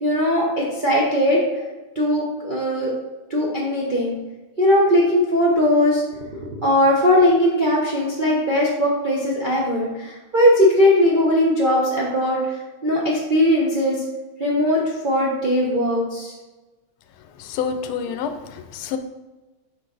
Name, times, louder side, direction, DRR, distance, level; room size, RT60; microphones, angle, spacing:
voice 1, 0.0-1.4 1.9-2.9 3.3-4.2 4.6-6.0 6.4-14.0 14.4-16.3, left 1 dB, 50° right, -5 dB, 0.6 m, -19 dB
voice 2, 17.4-19.0, left 7 dB, 80° left, 8 dB, 1.4 m, -28 dB
6.7 x 4.7 x 3.9 m, 1.2 s
omnidirectional pair, 2.4 m